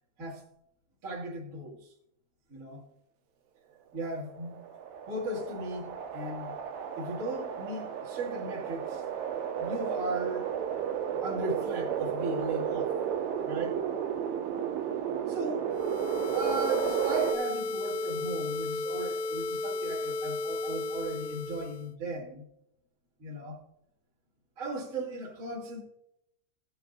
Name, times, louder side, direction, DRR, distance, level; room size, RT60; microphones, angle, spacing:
voice 1, 1.0-1.9 2.5-2.8 3.9-4.6 5.0-6.5 7.0-9.0 9.6-10.5 11.2-12.9 13.4-13.8 15.3-15.7 16.3-22.4 23.2-23.6 24.6-25.8, right 2 dB, 25° right, 1.8 m, -37 dB
sound 1, 4.1-17.3, right 8 dB, 75° right, 2.8 m, -33 dB
sound 2, 15.7-21.9, left 3 dB, 80° left, 2.7 m, -34 dB
18.0 x 8.2 x 2.6 m
omnidirectional pair, 5.5 m